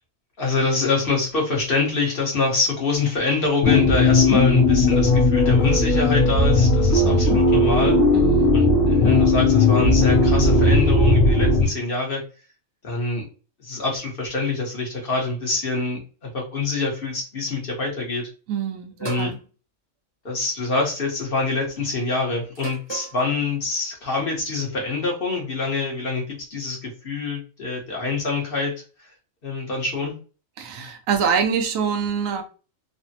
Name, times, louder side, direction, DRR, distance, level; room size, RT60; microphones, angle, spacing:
voice 1, 0.4-8.0 8.5-12.2 12.8-13.2 13.6-18.3 19.0-19.3 20.2-28.7 29.4-30.1, left 3 dB, 45° left, 1.1 m, -25 dB
sound 1, 3.6-11.6, left 2 dB, 70° left, 1.0 m, -17 dB
voice 2, 7.0-7.5 8.1-8.6 18.5-19.4 30.6-32.4, right 6 dB, 90° right, 1.0 m, -25 dB
sound 2, 19.0-19.4 20.6-20.9 22.5-23.2, right 5 dB, 25° right, 0.7 m, -35 dB
3.3 x 2.1 x 2.7 m
omnidirectional pair, 1.4 m